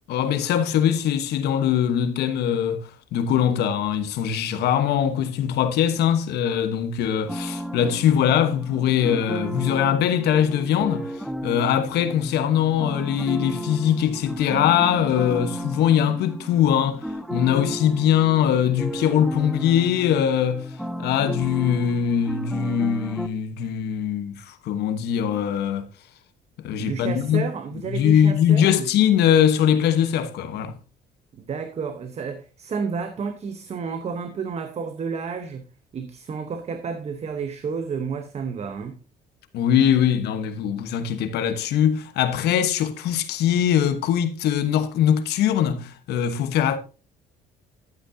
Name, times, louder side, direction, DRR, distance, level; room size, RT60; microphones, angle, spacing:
voice 1, 0.1-11.1 11.4-20.7 21.0-25.9 26.6-27.4 27.9-30.7 39.5-46.8, left 9 dB, 75° left, 1.2 m, -22 dB
sound 1, 7.3-23.3, equal, ahead, 0.7 m, -33 dB
voice 2, 26.8-28.9 31.3-35.7 35.9-39.0, right 5 dB, 40° right, 1.0 m, -31 dB
12.0 x 8.2 x 2.7 m
cardioid pair, 110°, 17 cm